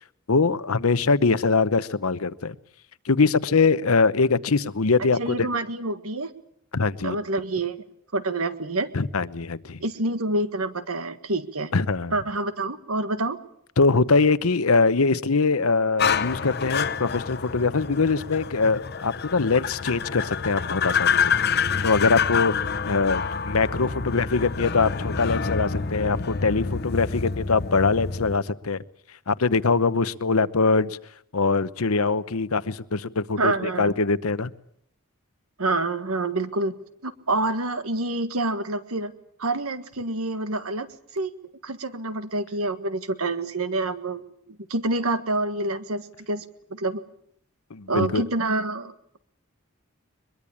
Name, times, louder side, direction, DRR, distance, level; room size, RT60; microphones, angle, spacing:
voice 1, 0.3-2.5 3.0-5.3 6.7-7.2 8.9-9.8 11.7-12.1 13.8-22.5 22.8-28.8 29.3-31.0 31.3-34.5 47.7-48.2, left 4 dB, 85° left, 15 dB, 0.9 m, -23 dB
voice 2, 5.2-6.3 7.0-7.8 8.1-8.9 9.8-11.7 12.1-13.4 33.4-33.9 35.6-36.7 37.0-39.1 39.4-41.3 41.6-44.2 44.5-46.4 46.7-47.0 47.9-49.2, right 2 dB, 90° right, 10 dB, 1.7 m, -27 dB
sound 1, 16.0-28.4, left 6 dB, 50° left, 0.9 m, -27 dB
22.5 x 22.5 x 8.6 m, 0.70 s
head